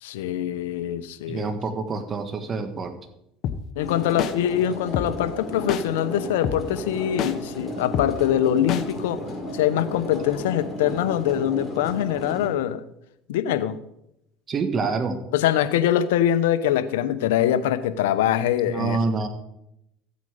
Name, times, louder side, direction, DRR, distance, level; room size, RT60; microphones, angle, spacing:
voice 1, 0.0-1.5 3.7-9.2 9.5-12.8 13.3-13.8 15.3-19.0, left 11 dB, 85° left, 13 dB, 0.8 m, -23 dB
voice 2, 1.3-3.0 14.5-15.2 18.7-19.3, right 4 dB, 35° right, 7 dB, 1.5 m, -26 dB
sound 1, 3.4-3.6 4.2-4.3 4.9-5.1 5.7-5.8 6.4-6.6 7.2-7.3 7.9-8.1 8.7-8.8, left 9 dB, 55° left, 1.0 m, -26 dB
sound 2, 3.8-12.5, left 1 dB, 20° left, 5.4 m, -34 dB
14.5 x 8.2 x 5.0 m, 0.82 s
supercardioid pair, 95°, 0 cm